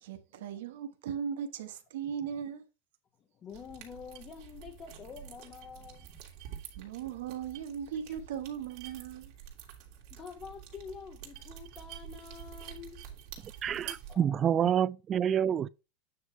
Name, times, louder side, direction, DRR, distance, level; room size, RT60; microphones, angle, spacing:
voice 1, 0.0-2.6 6.8-9.3, right 8 dB, 80° right, 1.2 m, -38 dB
voice 2, 3.3-6.2 8.1-8.2 10.1-13.0 14.1-14.7, left 6 dB, 30° left, 1.2 m, -47 dB
sound 1, 3.5-14.1, right 10 dB, 55° right, 2.8 m, -48 dB
voice 3, 13.6-15.7, right 9 dB, 30° right, 0.4 m, -27 dB
9.4 x 3.2 x 5.5 m
supercardioid pair, 135°, 0 cm